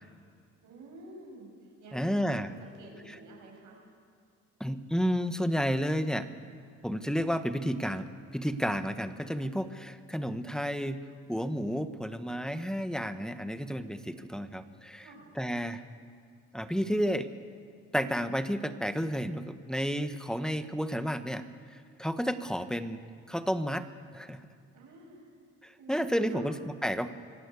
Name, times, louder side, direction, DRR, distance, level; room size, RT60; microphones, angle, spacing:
voice 1, 0.6-3.8 15.0-15.4 24.7-25.3 25.8-26.5, right 3 dB, 80° right, -1 dB, 6.9 m, -49 dB
voice 2, 1.9-2.5 3.1-3.2 4.6-6.3 6.8-8.1 8.3-11.0 11.3-15.1 15.3-15.8 16.5-17.3 17.9-21.4 21.7-23.9 24.1-24.4 25.6-27.1, equal, ahead, 10 dB, 1.3 m, -31 dB
25.5 x 16.5 x 8.4 m, 2.1 s
cardioid pair, 90°, 30 cm